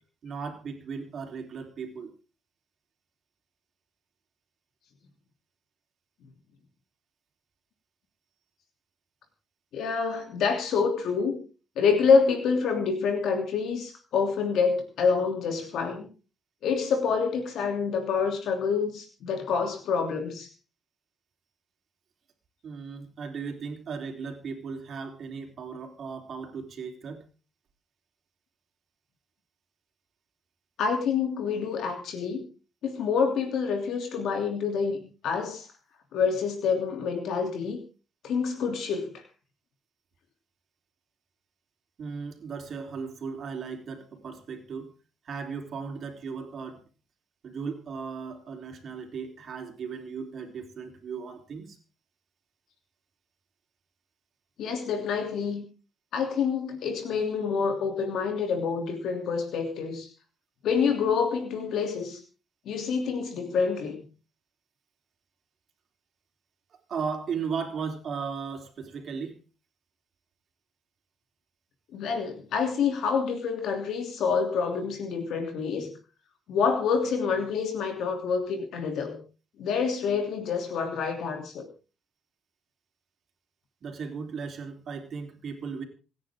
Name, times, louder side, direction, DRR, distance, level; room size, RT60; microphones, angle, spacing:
voice 1, 0.2-2.1 22.6-27.2 42.0-44.9 45.2-46.8 47.4-51.8 66.9-69.4 83.8-85.8, right 5 dB, 45° right, 3 dB, 3.8 m, -36 dB
voice 2, 9.7-11.4 11.8-16.1 16.6-20.5 30.8-32.5 32.8-35.7 36.1-37.8 38.2-39.2 54.6-55.6 56.1-60.1 60.6-62.2 62.6-64.1 71.9-76.0 76.5-79.2 79.6-81.7, left 5 dB, 65° left, 4 dB, 3.1 m, -27 dB
28.0 x 10.0 x 3.7 m, 0.35 s
cardioid pair, 145°, 0 cm